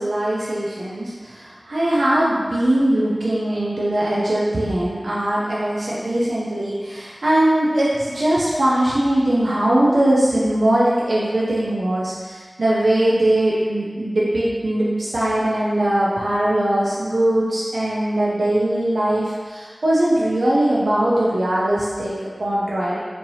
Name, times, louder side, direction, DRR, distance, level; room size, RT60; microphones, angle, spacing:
voice 1, 0.0-23.1, right 1 dB, 90° right, -7 dB, 0.5 m, -20 dB
4.4 x 2.7 x 2.8 m, 1.5 s
wide cardioid pair, 40°, 0 cm